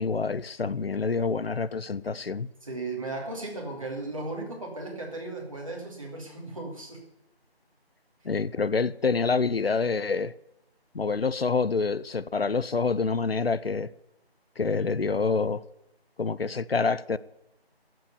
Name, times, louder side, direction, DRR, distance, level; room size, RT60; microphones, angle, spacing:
voice 1, 0.0-2.5 8.2-10.3 10.9-13.9 14.6-15.7 16.2-17.2, left 4 dB, 65° left, 0.6 m, -27 dB
voice 2, 2.6-7.0, right 2 dB, 30° right, 2.7 m, -36 dB
15.5 x 7.8 x 6.9 m
figure-of-eight pair, 175°, 32 cm